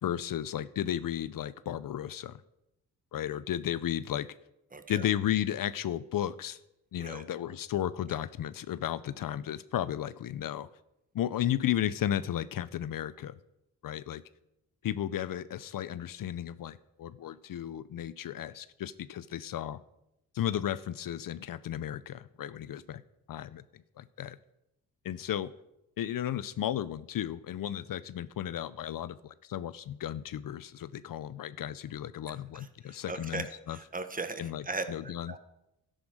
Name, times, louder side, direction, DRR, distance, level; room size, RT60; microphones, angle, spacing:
voice 1, 0.0-2.4 3.1-4.3 4.9-6.6 6.9-10.7 11.1-13.3 13.8-14.2 14.8-19.8 20.3-23.0 23.3-24.4 25.0-25.5 26.0-33.8 34.4-35.3, left 11 dB, 65° left, 17 dB, 0.6 m, -34 dB
voice 2, 4.7-5.1 7.0-7.2 32.5-35.4, right 3 dB, 25° right, 9 dB, 1.4 m, -39 dB
13.0 x 10.5 x 6.3 m, 0.87 s
wide cardioid pair, 130°, 36 cm